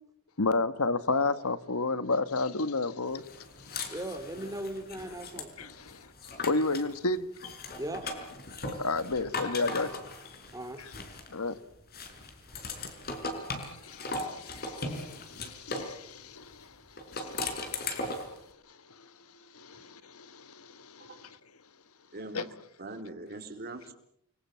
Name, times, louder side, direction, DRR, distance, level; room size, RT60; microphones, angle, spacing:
voice 1, 0.4-3.3 3.6-3.9 5.6-6.1 6.4-7.5 8.8-9.9 10.8-10.9 11.3-11.5 13.6-18.2 18.7-19.1 19.5-21.4 22.3-22.5, left 3 dB, 75° left, 1.5 m, -32 dB
sound 1, 3.3-6.9 7.3-11.5 11.9-15.9 17.0-18.4, left 2 dB, 45° left, 4.9 m, -38 dB
voice 2, 3.9-5.5 7.8-8.0 10.5-10.8, right 1 dB, 15° right, 3.0 m, -37 dB
voice 3, 21.0-21.4 22.1-22.5 22.8-23.9, right 2 dB, 45° right, 4.3 m, -42 dB
29.0 x 22.0 x 7.6 m
head